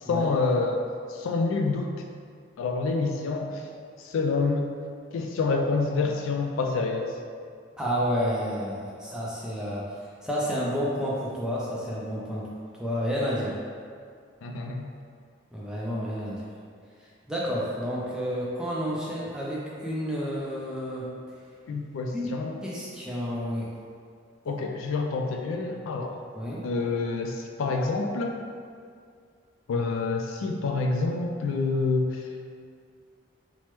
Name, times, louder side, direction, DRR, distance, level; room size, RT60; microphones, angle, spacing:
voice 1, 0.1-0.8 1.1-1.9 2.6-3.7 4.0-4.7 5.1-7.2 14.4-14.9 21.7-22.5 24.5-26.2 26.6-28.4 29.7-32.3, left 3 dB, 85° left, 3 dB, 0.3 m, -27 dB
voice 2, 7.8-12.5 12.8-13.6 15.5-16.4 17.0-21.1 22.1-22.3 22.6-23.7 26.3-26.6, equal, 5° right, -6 dB, 0.4 m, -30 dB
3.2 x 2.0 x 3.0 m, 2.2 s
head